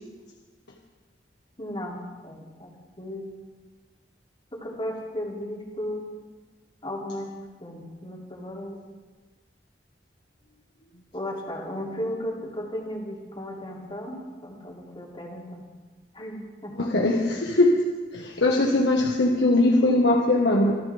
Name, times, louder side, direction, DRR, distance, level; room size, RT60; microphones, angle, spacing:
voice 1, 1.6-2.7 3.0-3.3 4.5-6.1 6.8-7.3 7.6-8.8 11.1-15.6 16.1-16.7, left 1 dB, 30° left, -3 dB, 3.1 m, -35 dB
voice 2, 16.8-17.8 18.1-20.8, left 2 dB, 90° left, -1 dB, 1.5 m, -21 dB
25.0 x 15.0 x 3.5 m, 1.3 s
head